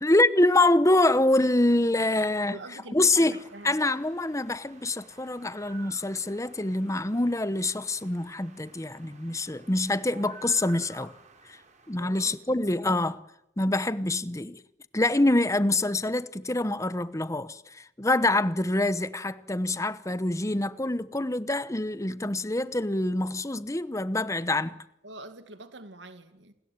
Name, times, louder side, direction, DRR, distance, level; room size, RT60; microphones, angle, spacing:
voice 1, 0.0-2.6 2.9-3.3 3.6-11.1 11.9-13.2 13.6-14.6 14.9-24.8, left 2 dB, 15° left, 1.0 m, -25 dB
voice 2, 2.5-3.8 11.9-12.7 25.0-26.5, right 2 dB, 65° right, 2.2 m, -45 dB
sound 1, 3.2-12.4, right 4 dB, 40° right, 5.3 m, -52 dB
28.5 x 20.5 x 9.6 m
head